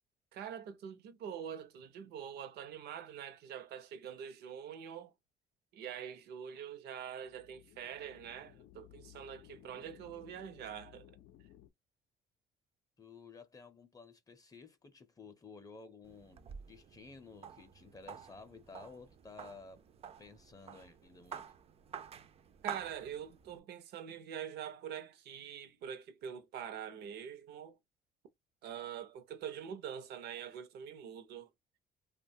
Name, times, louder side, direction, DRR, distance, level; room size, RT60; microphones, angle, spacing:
voice 1, 0.3-5.1 5.7-11.1 22.6-27.8 28.6-31.5, right 8 dB, 75° right, 0.6 m, -45 dB
sound 1, 7.1-11.7, left 13 dB, 85° left, 0.4 m, -59 dB
voice 2, 13.0-16.4 16.7-19.8 20.2-21.5, left 4 dB, 20° left, 0.5 m, -54 dB
sound 2, 16.0-23.6, right 7 dB, 35° right, 0.3 m, -49 dB
2.7 x 2.2 x 2.6 m
cardioid pair, 110°, 17 cm